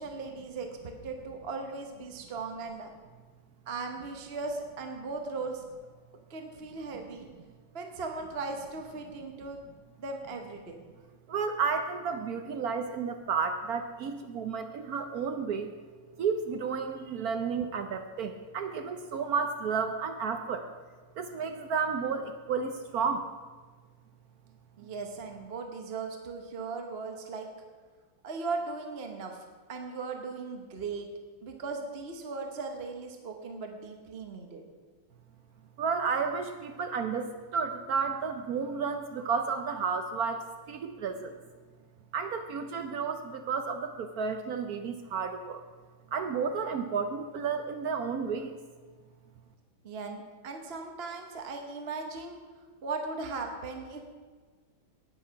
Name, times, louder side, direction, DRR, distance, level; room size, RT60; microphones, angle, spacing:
voice 1, 0.0-2.9 3.7-5.6 6.3-7.3 7.7-9.6 10.0-10.8 24.8-27.5 28.2-31.1 31.4-34.6 49.8-52.4 52.8-54.0, right 4 dB, 40° right, 4 dB, 0.9 m, -38 dB
voice 2, 11.3-15.7 16.2-20.7 21.2-23.3 35.8-41.3 42.1-45.6 46.1-48.6, right 5 dB, 70° right, 7 dB, 0.9 m, -32 dB
18.0 x 6.3 x 5.7 m, 1.4 s
omnidirectional pair, 2.4 m